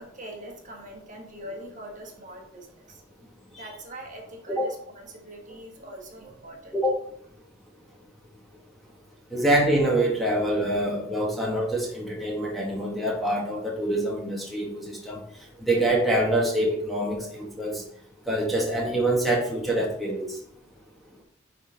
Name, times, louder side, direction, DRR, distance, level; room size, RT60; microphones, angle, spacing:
voice 1, 0.0-3.0 3.6-6.7 7.8-7.9 8.9-9.0, right 1 dB, 40° right, 0 dB, 1.5 m, -43 dB
voice 2, 9.3-15.2 15.7-17.8 18.3-20.4, right 1 dB, ahead, -3 dB, 1.1 m, -25 dB
10.0 x 3.8 x 3.7 m, 0.69 s
head